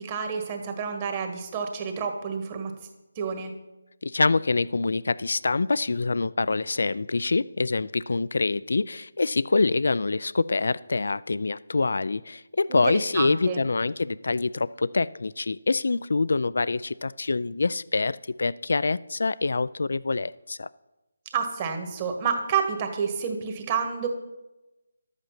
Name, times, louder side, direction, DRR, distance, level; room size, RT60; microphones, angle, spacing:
voice 1, 0.0-2.7 3.1-3.5 12.7-12.8 13.1-13.6 21.3-24.1, right 6 dB, 25° right, 5 dB, 1.7 m, -29 dB
voice 2, 4.0-20.7, left 3 dB, 65° left, 19 dB, 0.3 m, -25 dB
12.0 x 8.0 x 5.8 m, 1.0 s
figure-of-eight pair, 160°, 0 cm